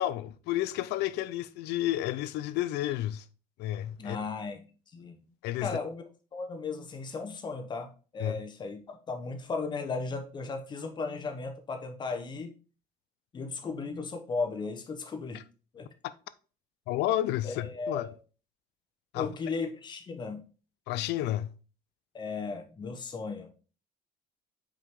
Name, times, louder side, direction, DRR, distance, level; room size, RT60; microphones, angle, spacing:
voice 1, 0.0-3.2 3.6-4.2 5.4-5.8 8.2-8.4 16.0-16.1 16.9-18.1 19.1-19.3 20.9-21.5, left 14 dB, 90° left, 0.5 m, -31 dB
voice 2, 4.0-5.1 5.6-6.0 6.3-12.5 13.3-15.4 15.7-15.9 17.4-18.1 19.1-20.4 22.1-23.5, left 4 dB, 25° left, 0.9 m, -36 dB
5.6 x 4.9 x 3.6 m
cardioid pair, 155°, 17 cm